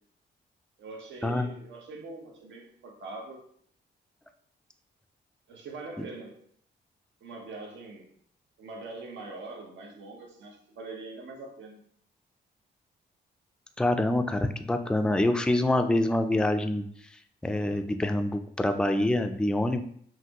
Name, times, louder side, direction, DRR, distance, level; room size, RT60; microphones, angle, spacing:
voice 1, 0.8-3.4 5.5-6.4 7.2-8.1 8.6-11.8, right 3 dB, 85° right, 0 dB, 0.9 m, -43 dB
voice 2, 13.8-16.8 17.4-19.8, left 1 dB, 5° left, 7 dB, 0.3 m, -26 dB
5.8 x 2.6 x 2.9 m, 0.62 s
cardioid pair, 105°, 19 cm